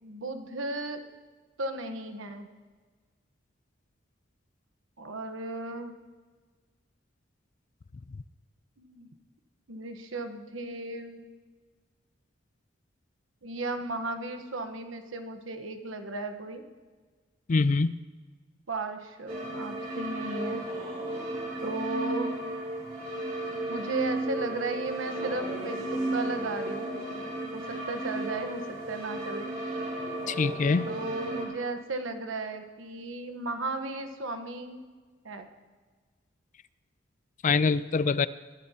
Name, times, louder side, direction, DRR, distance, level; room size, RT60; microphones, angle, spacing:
voice 1, 0.0-1.0 1.6-2.5 5.0-5.9 8.8-9.1 9.7-11.3 13.4-16.6 18.7-20.6 21.6-22.3 23.7-26.9 27.5-29.5 30.9-34.8 35.2-35.5, right 2 dB, 90° right, 7 dB, 1.2 m, -35 dB
voice 2, 17.5-18.0 30.3-30.9 37.4-38.3, left 4 dB, 40° left, 16 dB, 0.4 m, -24 dB
sound 1, 19.3-31.4, right 1 dB, 45° right, 3.2 m, -34 dB
21.5 x 11.5 x 2.9 m, 1.4 s
head